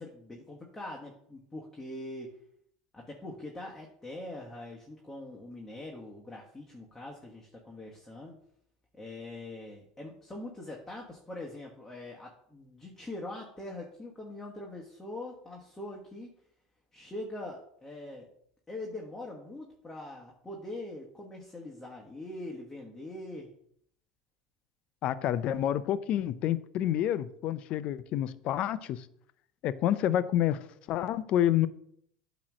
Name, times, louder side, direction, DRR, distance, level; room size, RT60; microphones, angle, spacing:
voice 1, 0.0-2.3 2.9-8.3 8.9-16.3 16.9-18.3 18.7-23.5, left 1 dB, 10° left, 1.3 m, -43 dB
voice 2, 25.0-29.0 29.6-30.6 30.9-31.7, left 11 dB, 50° left, 0.5 m, -28 dB
8.6 x 3.1 x 6.2 m
supercardioid pair, 105°, 2 cm